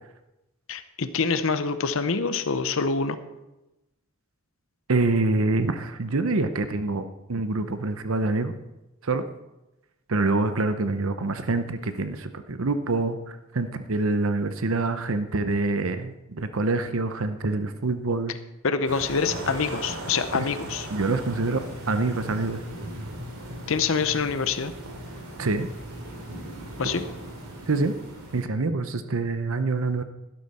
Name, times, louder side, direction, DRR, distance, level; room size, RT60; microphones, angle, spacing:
voice 1, 0.7-3.2 18.6-20.9 23.7-24.7 26.8-27.0, left 5 dB, 65° left, 11 dB, 0.8 m, -26 dB
voice 2, 4.9-8.6 9.0-9.2 10.1-18.3 20.9-22.6 25.4-25.7 27.7-27.9 28.3-30.0, right 3 dB, 70° right, 9 dB, 0.8 m, -26 dB
sound 1, 18.9-28.5, right 1 dB, 90° right, 2.9 m, -38 dB
12.0 x 11.5 x 4.3 m, 0.97 s
head